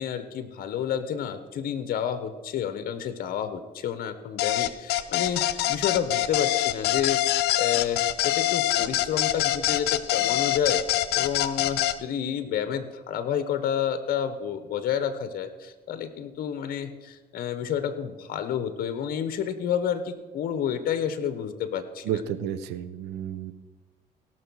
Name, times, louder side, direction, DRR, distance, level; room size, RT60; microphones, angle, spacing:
voice 1, 0.0-10.8 11.1-22.2, left 8 dB, 60° left, 11 dB, 1.1 m, -30 dB
sound 1, 4.4-12.0, left 15 dB, 75° left, 0.7 m, -25 dB
voice 2, 22.0-23.5, right 9 dB, 90° right, 13 dB, 0.8 m, -31 dB
17.0 x 6.2 x 6.3 m, 1.2 s
cardioid pair, 110°, 17 cm